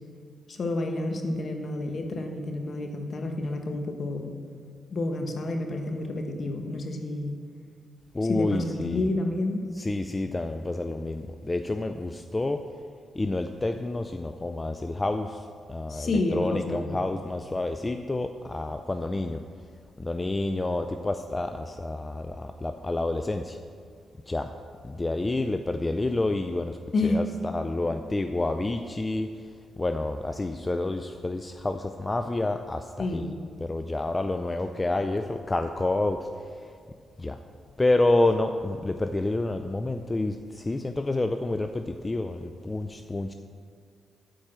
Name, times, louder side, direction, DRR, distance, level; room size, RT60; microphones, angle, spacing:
voice 1, 0.5-4.3 4.9-7.3 8.2-9.6 15.9-17.0 26.9-27.2 33.0-33.4, left 2 dB, 55° left, 4 dB, 1.1 m, -29 dB
voice 2, 8.1-9.1 9.7-12.6 13.1-19.4 20.0-23.6 24.3-24.5 24.8-29.4 29.8-33.2 33.6-36.5 37.2-37.4 37.8-43.3, left 2 dB, 25° left, 7 dB, 0.4 m, -29 dB
8.8 x 4.7 x 7.4 m, 2.1 s
supercardioid pair, 50°, 0 cm